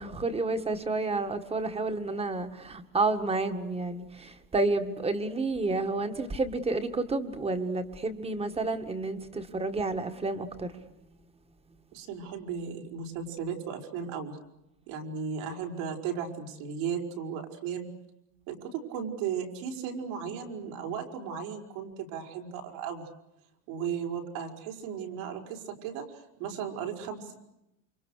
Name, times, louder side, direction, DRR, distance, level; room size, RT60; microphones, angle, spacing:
voice 1, 0.0-10.7, right 3 dB, 15° right, 1.9 m, -30 dB
voice 2, 11.9-14.4 14.9-17.9 18.5-23.0 23.7-26.0 26.4-27.4, right 7 dB, 70° right, 5.9 m, -35 dB
29.0 x 27.0 x 6.6 m
cardioid pair, 165°, 44 cm